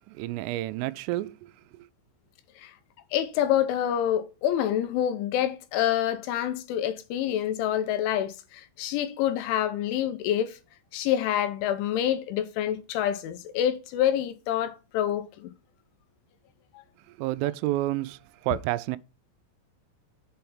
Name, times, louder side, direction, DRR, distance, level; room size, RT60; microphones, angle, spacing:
voice 1, 0.1-1.3 17.2-19.0, right 16 dB, 90° right, 3.2 m, -29 dB
voice 2, 3.1-10.6 10.9-15.5, left 11 dB, 80° left, 3.1 m, -27 dB
7.7 x 4.5 x 5.5 m
omnidirectional pair, 5.7 m